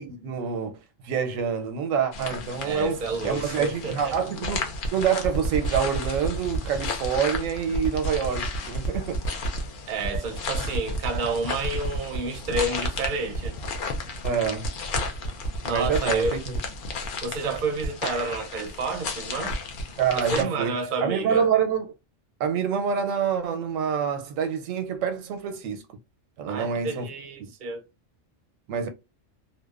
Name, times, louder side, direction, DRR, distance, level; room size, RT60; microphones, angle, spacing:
voice 1, 0.0-9.2 14.2-14.7 15.7-16.5 20.0-21.9 22.4-26.0 26.4-27.1 27.4-27.5 28.7-28.9, right 7 dB, 90° right, 1.0 m, -27 dB
sound 1, 2.1-20.4, left 5 dB, 60° left, 0.5 m, -35 dB
voice 2, 2.6-4.2 9.9-13.6 15.6-16.4 17.2-19.6 20.2-21.5 26.5-27.8, right 3 dB, 55° right, 0.6 m, -30 dB
sound 2, 4.4-17.1 17.6-17.9 18.1-18.2 18.7-18.8 19.2-19.8 20.1-20.2, right 4 dB, 90° left, 1.1 m, -34 dB
2.7 x 2.1 x 2.3 m
omnidirectional pair, 1.3 m